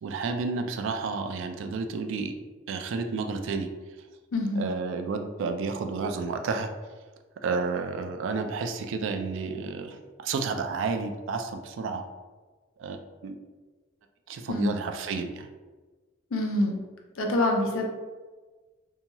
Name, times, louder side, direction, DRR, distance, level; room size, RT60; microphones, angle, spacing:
voice 1, 0.0-2.3 2.7-3.7 4.5-6.7 7.4-10.0 10.2-12.0 12.8-13.4 14.3-15.5, right 4 dB, 65° right, 6 dB, 0.3 m, -31 dB
voice 2, 4.3-4.7 14.5-14.7 16.3-16.8 17.2-17.8, left 1 dB, 85° left, 2 dB, 0.5 m, -26 dB
2.8 x 2.7 x 2.2 m, 1.3 s
head